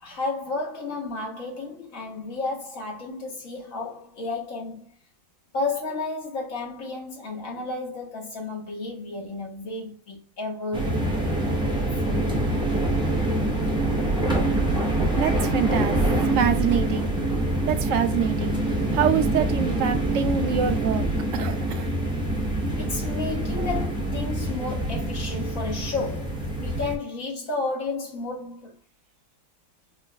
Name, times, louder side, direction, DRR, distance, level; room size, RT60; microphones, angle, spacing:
voice 1, 0.0-4.9 5.5-11.3 11.8-12.2 22.8-28.8, left 3 dB, 85° left, 1.7 m, -32 dB
sound 1, 10.7-27.0, right 1 dB, 5° right, 0.7 m, -25 dB
voice 2, 15.1-16.0 16.3-17.1 17.7-18.5 18.9-21.1 21.3-21.9, right 8 dB, 75° right, 0.9 m, -25 dB
4.4 x 3.0 x 2.2 m
omnidirectional pair, 1.4 m